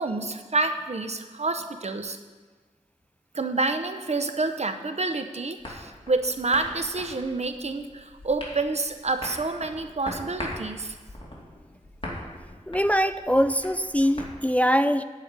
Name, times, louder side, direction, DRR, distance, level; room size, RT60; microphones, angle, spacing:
voice 1, 0.0-2.2 3.3-11.0, right 3 dB, 60° right, 8 dB, 0.8 m, -28 dB
sound 1, 5.6-14.3, left 1 dB, 45° left, 2.6 m, -41 dB
voice 2, 12.7-15.0, equal, 10° left, 11 dB, 0.3 m, -22 dB
10.5 x 5.0 x 8.2 m, 1.4 s
wide cardioid pair, 50°, 13 cm